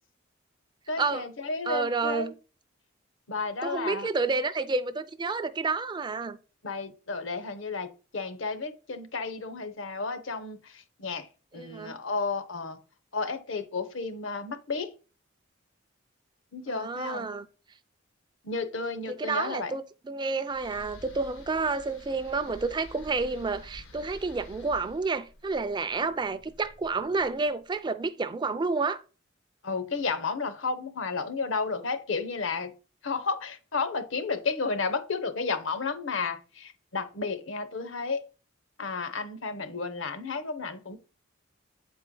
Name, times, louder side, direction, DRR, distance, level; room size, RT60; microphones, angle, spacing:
voice 1, 0.9-2.3 3.3-4.1 6.6-7.9 8.1-11.3 11.5-12.8 13.1-14.9 16.5-17.3 18.4-19.7 29.6-32.7 33.0-38.2 38.8-41.0, left 4 dB, 70° left, 0.9 m, -32 dB
voice 2, 1.7-2.3 3.6-6.4 11.5-12.0 16.7-17.5 19.1-29.0, right 4 dB, 20° right, 0.4 m, -30 dB
sound 1, 20.5-27.6, equal, 85° left, 1.3 m, -49 dB
8.1 x 4.4 x 3.8 m
head